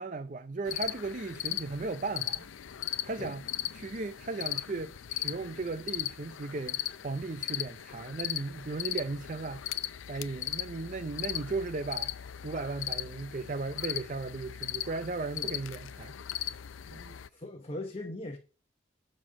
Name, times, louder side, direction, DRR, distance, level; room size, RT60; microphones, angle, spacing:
voice 1, 0.0-2.5 3.0-3.4 3.7-9.6 10.1-12.1 12.4-16.2 16.9-17.2, right 3 dB, 40° right, 0.5 m, -36 dB
sound 1, 0.7-17.3, left 13 dB, 85° left, 0.5 m, -38 dB
voice 2, 17.3-18.4, left 1 dB, 30° left, 1.0 m, -39 dB
12.0 x 4.3 x 7.4 m
head